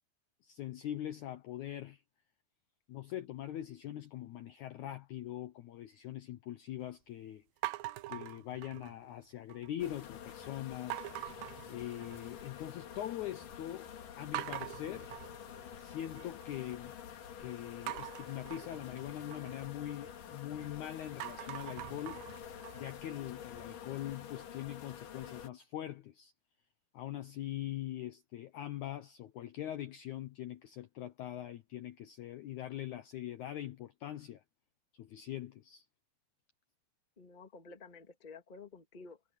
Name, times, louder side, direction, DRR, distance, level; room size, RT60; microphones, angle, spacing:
voice 1, 0.4-2.0 2.9-7.4 8.1-13.9 14.1-15.2 15.7-17.0 17.4-22.2 22.7-26.3 26.9-34.4 34.9-35.8, left 12 dB, 85° left, 1.7 m, -42 dB
sound 1, 7.6-9.1 9.5-10.0 10.9-12.4 12.8-13.3 13.7-13.8 14.3-16.5 17.9-20.7 21.1-24.0, right 17 dB, 75° right, 2.2 m, -44 dB
sound 2, 9.8-25.5, left 8 dB, 60° left, 3.5 m, -48 dB
voice 2, 37.2-39.2, left 4 dB, 35° left, 0.7 m, -52 dB
omnidirectional pair, 4.5 m